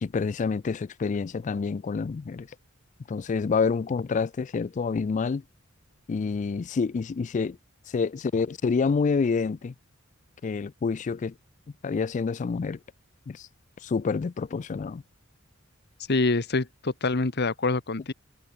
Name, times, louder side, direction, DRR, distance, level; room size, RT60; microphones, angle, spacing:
voice 1, 0.0-2.5 3.1-5.4 6.1-7.6 7.9-9.7 10.4-11.3 11.8-12.8 13.3-13.5 13.8-15.0, left 5 dB, 35° left, 0.3 m, -27 dB
voice 2, 16.1-18.1, left 3 dB, 55° left, 1.2 m, -25 dB
head